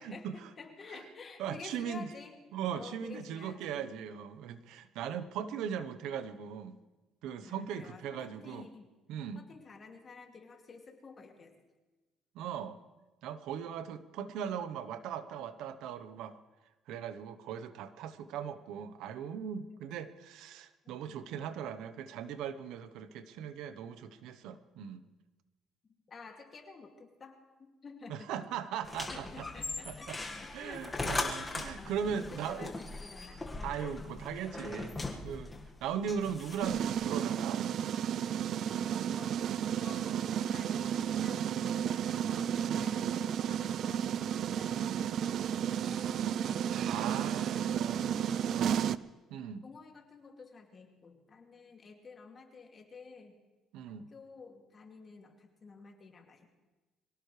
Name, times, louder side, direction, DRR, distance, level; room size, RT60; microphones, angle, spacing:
voice 1, 0.0-0.5 1.4-2.1 2.5-6.8 7.2-8.7 9.1-9.4 12.3-12.8 13.2-16.4 16.9-25.1 28.1-29.5 29.9-30.2 30.5-32.7 33.6-35.5 35.8-37.6 42.7-42.9 46.8-48.1 48.5-48.8 49.3-49.6 53.7-54.1, right 8 dB, 80° right, 12 dB, 0.9 m, -39 dB
voice 2, 0.6-2.4 2.7-3.9 7.4-8.9 9.3-11.6 19.7-19.8 26.1-28.3 29.1-33.4 39.1-39.4 39.8-49.0 49.6-53.4 54.1-56.5, left 4 dB, 35° left, 2 dB, 2.5 m, -51 dB
sound 1, 28.8-37.0, left 2 dB, 15° left, 1.7 m, -40 dB
sound 2, 36.6-49.0, right 9 dB, 60° right, 0.4 m, -32 dB
23.5 x 17.5 x 3.3 m, 1.2 s
cardioid pair, 115°, 0 cm